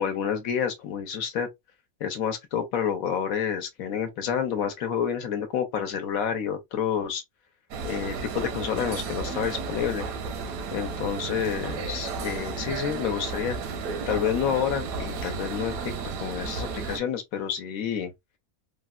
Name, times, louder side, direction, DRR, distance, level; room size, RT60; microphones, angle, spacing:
voice 1, 0.0-1.5 2.0-7.2 7.8-10.1 10.7-13.6 14.1-15.9 16.2-18.1, left 8 dB, 75° left, 1.2 m, -29 dB
sound 1, 7.7-17.0, right 4 dB, 80° right, 1.1 m, -33 dB
3.3 x 2.1 x 2.3 m
omnidirectional pair, 1.5 m